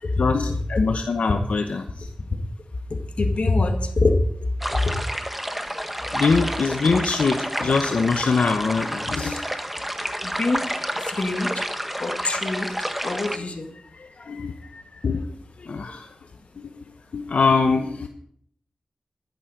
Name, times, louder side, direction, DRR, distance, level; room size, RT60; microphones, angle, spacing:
voice 1, 0.2-2.1 6.1-9.4 14.3-14.5 15.0-15.2 15.7-16.1 17.1-18.1, left 4 dB, 85° left, 5 dB, 0.9 m, -23 dB
voice 2, 2.9-4.2 4.8-4.9 10.2-10.7 11.1-11.6 12.0-12.7 13.0-13.7 14.3-14.4 14.7-14.8 15.6-15.7, left 2 dB, 65° left, 5 dB, 1.8 m, -24 dB
sound 1, 4.6-13.4, equal, 5° right, 1.3 m, -29 dB
12.0 x 10.5 x 5.0 m, 0.65 s
cardioid pair, 55°, 2 cm